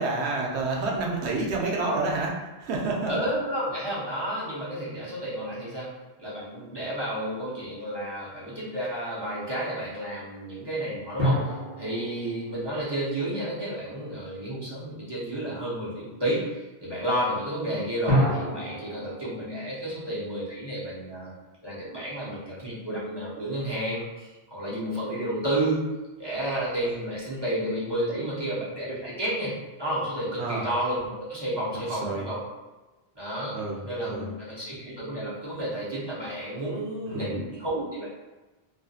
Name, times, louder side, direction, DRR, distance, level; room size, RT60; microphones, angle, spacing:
voice 1, 0.0-3.1 30.4-30.6 31.9-32.3 33.5-34.3 37.1-37.4, right 3 dB, 75° right, -1 dB, 0.8 m, -29 dB
voice 2, 3.1-5.9 6.2-21.3 21.6-25.9 26.2-32.4 33.2-33.5 33.8-38.1, right 1 dB, 30° right, -9 dB, 0.6 m, -31 dB
sound 1, 11.2-14.0 18.1-21.3, equal, 45° right, 0.9 m, -30 dB
2.5 x 2.4 x 2.3 m, 1.1 s
omnidirectional pair, 1.1 m